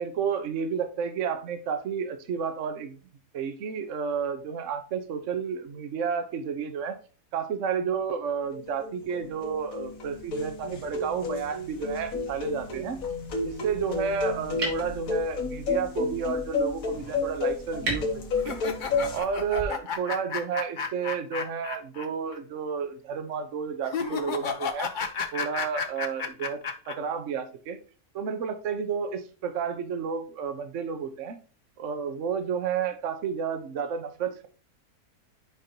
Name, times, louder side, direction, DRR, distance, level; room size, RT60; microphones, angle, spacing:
voice 1, 0.0-2.9 3.3-7.0 7.3-13.0 13.4-18.6 19.1-24.9 25.3-27.8 28.1-31.4 31.8-34.5, right 6 dB, 55° right, 9 dB, 1.2 m, -31 dB
sound 1, 8.5-19.2, left 3 dB, 60° left, 1.6 m, -31 dB
sound 2, 11.6-19.6, right 2 dB, 80° right, 3.3 m, -40 dB
sound 3, 18.4-22.1 22.3-22.4 23.8-26.9, left 6 dB, 40° left, 0.8 m, -32 dB
9.0 x 5.1 x 2.8 m, 0.38 s
omnidirectional pair, 1.7 m